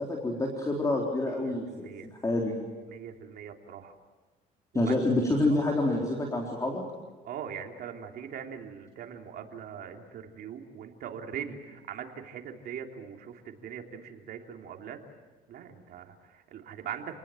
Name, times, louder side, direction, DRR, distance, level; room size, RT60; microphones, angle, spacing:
voice 1, 0.0-1.9 2.2-2.5 4.7-6.8, left 2 dB, 20° left, 0 dB, 3.9 m, -27 dB
voice 2, 1.3-2.1 2.9-3.9 4.7-5.1 5.6-5.8 7.2-15.0 15.5-17.2, right 8 dB, 65° right, 3 dB, 3.2 m, -41 dB
29.5 x 20.0 x 7.7 m, 1.3 s
cardioid pair, 110°, 17 cm